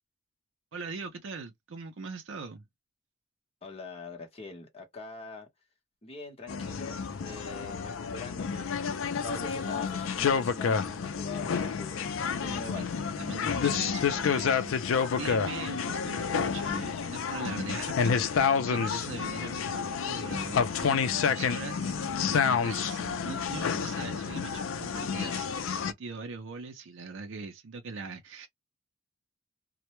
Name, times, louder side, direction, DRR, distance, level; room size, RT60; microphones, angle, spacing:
voice 1, 0.7-2.6 12.3-12.9 13.2-28.5, right 4 dB, 70° right, 0.5 m, -41 dB
voice 2, 3.6-5.5 6.0-12.1 12.4-12.9, left 3 dB, 30° left, 0.8 m, -43 dB
sound 1, 6.5-25.9, left 6 dB, 80° left, 0.4 m, -29 dB
2.1 x 2.0 x 2.9 m
head